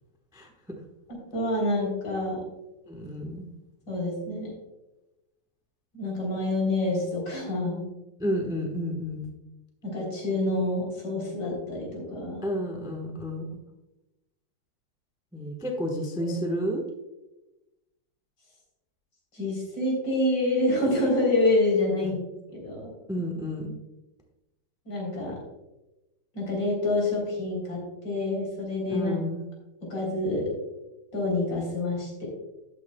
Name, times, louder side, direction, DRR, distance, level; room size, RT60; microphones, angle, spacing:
voice 1, 1.3-2.4 3.9-4.5 5.9-7.9 9.8-12.4 16.2-16.4 19.3-22.9 24.9-25.4 26.3-29.2 29.9-30.4 31.1-32.3, left 2 dB, 55° left, -2 dB, 4.2 m, -27 dB
voice 2, 2.9-3.5 8.2-9.3 12.4-13.5 15.3-16.8 22.0-22.1 23.1-23.7 28.9-29.4, equal, 5° right, 2 dB, 0.4 m, -31 dB
13.0 x 9.1 x 2.2 m, 1.0 s
omnidirectional pair, 2.4 m